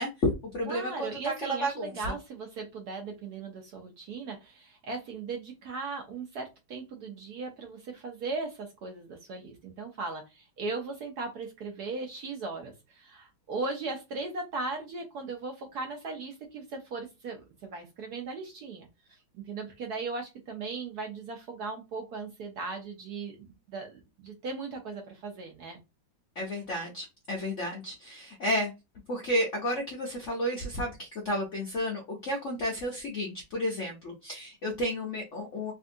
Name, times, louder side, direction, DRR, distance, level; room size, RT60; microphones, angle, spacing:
voice 1, 0.0-2.0 26.4-28.7 29.1-35.7, equal, 65° left, 0 dB, 0.7 m, -32 dB
voice 2, 0.7-25.8, right 3 dB, 65° right, 3 dB, 1.0 m, -38 dB
3.4 x 2.7 x 2.5 m, 0.24 s
omnidirectional pair, 2.2 m